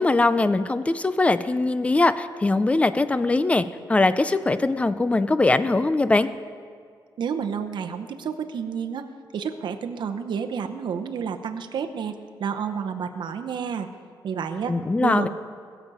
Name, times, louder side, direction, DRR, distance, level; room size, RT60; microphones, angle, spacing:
voice 1, 0.0-6.3 14.7-15.3, left 2 dB, 15° left, 13 dB, 0.4 m, -21 dB
voice 2, 7.2-9.1 9.3-13.9 14.2-15.3, right 7 dB, 70° right, 7 dB, 0.8 m, -30 dB
20.5 x 7.1 x 5.5 m, 2.2 s
wide cardioid pair, 160°, 8 cm